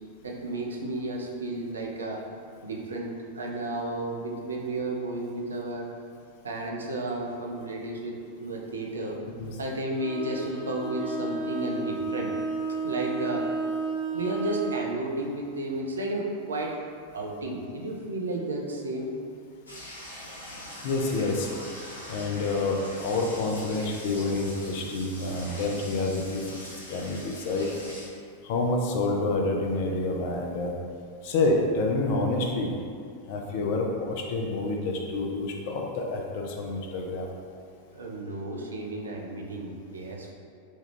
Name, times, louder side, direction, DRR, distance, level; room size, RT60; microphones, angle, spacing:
voice 1, 0.2-2.2 2.6-5.9 6.4-8.1 8.4-9.2 9.6-12.4 12.8-13.5 14.1-16.8 17.1-19.1 37.9-40.3, right 2 dB, 70° right, -1 dB, 0.4 m, -32 dB
Bowed string instrument, 9.9-14.9, right 3 dB, 10° right, 1.0 m, -32 dB
sound 1, 19.7-28.1, left 1 dB, 80° left, 0.7 m, -42 dB
voice 2, 20.8-21.5 22.1-26.4 26.9-27.7 28.4-30.7 31.2-32.7 33.3-37.3, left 2 dB, 50° left, 1 dB, 0.4 m, -28 dB
3.1 x 2.3 x 3.3 m, 2.3 s
figure-of-eight pair, 90°, 0 cm